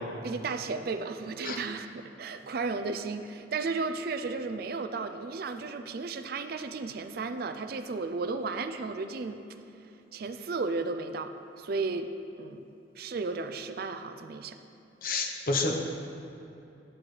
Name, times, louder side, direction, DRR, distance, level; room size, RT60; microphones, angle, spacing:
voice 1, 0.2-9.4 10.1-12.1 12.4-12.6 13.0-14.6, right 4 dB, 55° right, 9 dB, 0.4 m, -34 dB
voice 2, 15.0-15.8, left 3 dB, 50° left, 2 dB, 0.9 m, -29 dB
10.0 x 8.5 x 3.3 m, 2.9 s
head